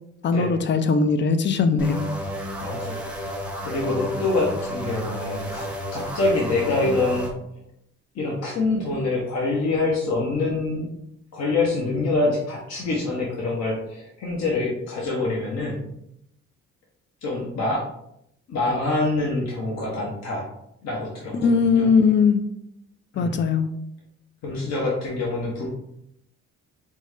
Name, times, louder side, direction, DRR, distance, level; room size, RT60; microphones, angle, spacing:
voice 1, 0.2-2.0 21.3-22.4 23.2-23.7, left 5 dB, 40° left, 10 dB, 0.5 m, -20 dB
sound 1, 1.8-7.3, equal, 5° right, 0.8 m, -32 dB
voice 2, 2.6-3.3 3.6-7.3 8.1-10.9 11.3-15.9 17.2-17.9 18.5-20.5 20.8-21.9 23.1-23.4 24.4-25.7, left 2 dB, 60° left, -3 dB, 0.9 m, -25 dB
5.3 x 2.1 x 3.3 m, 0.78 s
cardioid pair, 90°, 30 cm